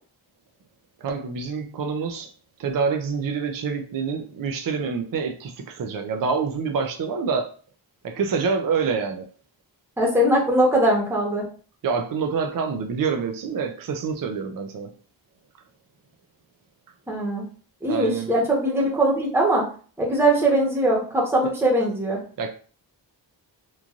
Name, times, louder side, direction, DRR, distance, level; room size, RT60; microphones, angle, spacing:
voice 1, 1.0-2.3 2.6-7.5 8.0-9.2 11.8-14.9 17.9-18.3 22.4-22.5, right 5 dB, 50° right, 0.5 m, -26 dB
voice 2, 10.0-11.4 17.1-17.4 17.8-19.6 20.0-22.2, right 1 dB, 5° right, 0.9 m, -21 dB
3.0 x 2.5 x 2.4 m
wide cardioid pair, 70°, 45 cm